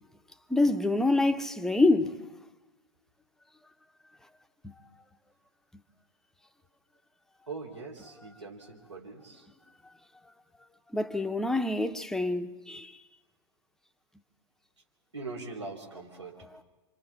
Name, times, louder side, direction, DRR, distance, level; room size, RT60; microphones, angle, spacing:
voice 1, 0.5-2.2 4.6-4.7 10.9-12.9 16.5-16.6, left 2 dB, 5° left, 0.9 m, -26 dB
voice 2, 7.5-9.5 15.1-16.4, right 3 dB, 85° right, 4.1 m, -42 dB
28.0 x 26.0 x 4.2 m
figure-of-eight pair, 105°, 15 cm